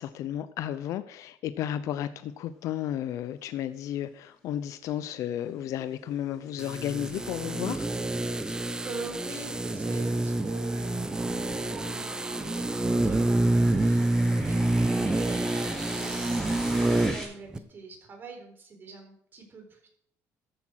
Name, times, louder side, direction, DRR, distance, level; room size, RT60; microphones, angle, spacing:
voice 1, 0.0-7.9, left 11 dB, 65° left, 13 dB, 0.7 m, -33 dB
sound 1, 4.0-17.2, equal, 10° left, 6.2 m, -43 dB
sound 2, 6.6-17.3 17.5-17.6, right 2 dB, 10° right, 0.8 m, -27 dB
voice 2, 8.5-14.2 14.4-19.9, right 3 dB, 35° right, 3 dB, 4.3 m, -44 dB
13.5 x 8.1 x 6.4 m, 0.65 s
cardioid pair, 130°, 6 cm